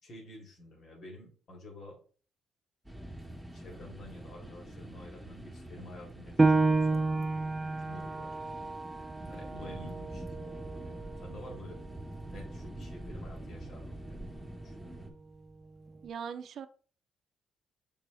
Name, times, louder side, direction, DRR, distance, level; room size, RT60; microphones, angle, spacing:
voice 1, 0.0-2.0 3.5-7.0 7.8-8.6 9.3-11.8 12.2-14.2 14.6-15.1, left 1 dB, 60° left, 3.1 m, -50 dB
sound 1, 2.8-15.1, right 1 dB, ahead, 1.9 m, -45 dB
Piano, 6.4-11.6 12.0-12.1 12.7-13.2, right 3 dB, 25° right, 0.6 m, -30 dB
voice 2, 16.0-16.7, right 7 dB, 60° right, 0.6 m, -40 dB
6.7 x 5.4 x 3.5 m
cardioid pair, 90°, 0 cm